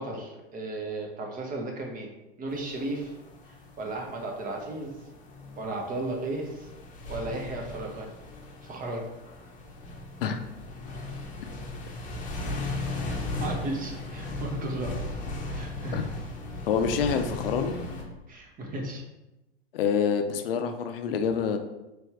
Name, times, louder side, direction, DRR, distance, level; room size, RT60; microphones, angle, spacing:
voice 1, 0.0-3.1 3.5-5.0 5.6-6.7 7.1-8.1 8.6-9.0 13.0-14.9 15.5-16.1 18.3-19.0, right 2 dB, 25° right, 1 dB, 1.0 m, -35 dB
sound 1, 2.5-18.0, left 2 dB, 25° left, 0.9 m, -37 dB
voice 2, 16.7-17.8 19.7-21.6, left 6 dB, 65° left, 7 dB, 0.5 m, -26 dB
4.4 x 3.4 x 3.5 m, 0.99 s
hypercardioid pair, 90°, 31 cm